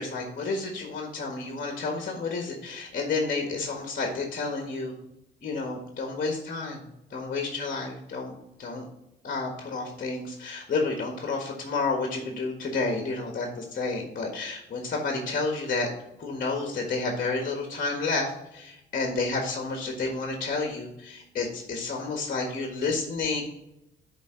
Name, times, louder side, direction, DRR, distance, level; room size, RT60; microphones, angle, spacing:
voice 1, 0.0-4.9 5.4-6.8 7.1-8.9 9.2-15.9 16.2-23.4, left 3 dB, 45° left, 2 dB, 1.6 m, -30 dB
10.0 x 4.1 x 3.9 m, 0.85 s
cardioid pair, 90°, 20 cm